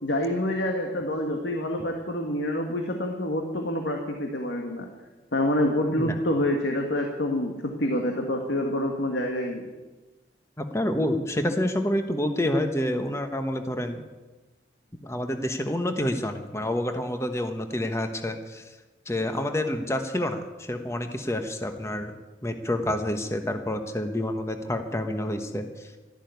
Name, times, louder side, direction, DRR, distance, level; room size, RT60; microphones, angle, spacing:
voice 1, 0.0-4.9 5.3-9.7, left 1 dB, 85° left, 2 dB, 1.7 m, -27 dB
voice 2, 10.6-14.0 15.0-18.6 19.1-22.1 22.4-25.9, left 1 dB, 15° left, 6 dB, 1.2 m, -28 dB
13.0 x 11.5 x 9.3 m, 1.2 s
head